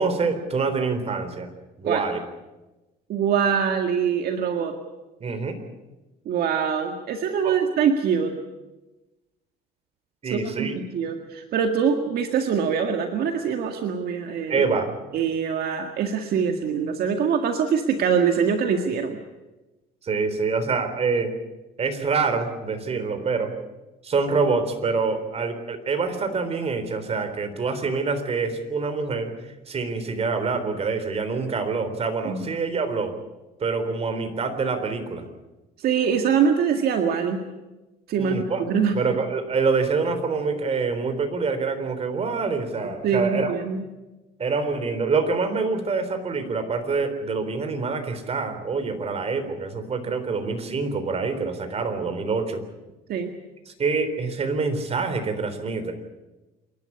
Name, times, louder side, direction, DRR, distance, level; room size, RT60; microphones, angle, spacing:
voice 1, 0.0-1.5 1.8-2.2 5.2-5.6 7.4-7.6 10.2-10.7 14.5-14.9 20.0-21.3 21.8-23.5 24.0-29.3 29.7-33.1 33.6-35.3 38.2-38.6 38.9-43.6 44.4-52.6 53.7-55.9, right 4 dB, 40° right, 8 dB, 3.8 m, -26 dB
voice 2, 3.1-4.8 6.3-8.4 10.3-10.7 10.9-14.6 15.1-19.2 32.2-32.5 35.8-37.4 38.1-39.0 43.0-43.8 53.1-53.3, right 7 dB, 65° right, 4 dB, 1.9 m, -23 dB
27.5 x 12.0 x 9.8 m, 1.1 s
cardioid pair, 110°, 17 cm